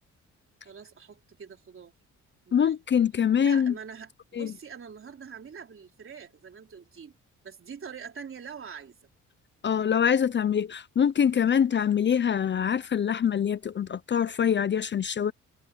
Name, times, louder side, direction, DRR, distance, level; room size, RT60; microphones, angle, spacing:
voice 1, 0.6-1.9 2.5-2.8 3.4-7.2 7.4-9.0, right 6 dB, 45° right, 3.8 m, -44 dB
voice 2, 2.5-3.7 4.4-4.5 9.6-15.3, left 8 dB, 40° left, 0.6 m, -24 dB
cardioid pair, 90°, 30 cm